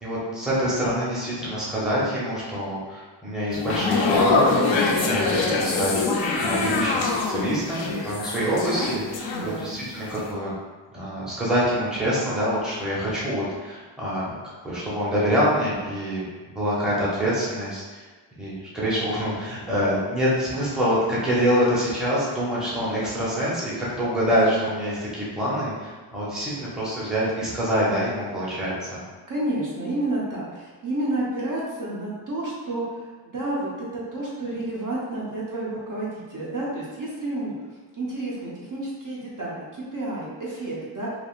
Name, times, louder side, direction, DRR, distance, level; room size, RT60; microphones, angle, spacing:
voice 1, 0.0-10.5 10.9-14.3 14.6-16.2 16.5-18.1 18.4-29.0, equal, ahead, -8 dB, 0.7 m, -26 dB
sound 1, 3.5-9.8 10.1-10.3, left 3 dB, 90° left, 0.6 m, -24 dB
voice 2, 9.3-9.7 29.3-37.5 38.0-41.1, right 1 dB, 45° right, -6 dB, 0.7 m, -30 dB
3.3 x 2.4 x 2.4 m, 1.4 s
wide cardioid pair, 150°, 44 cm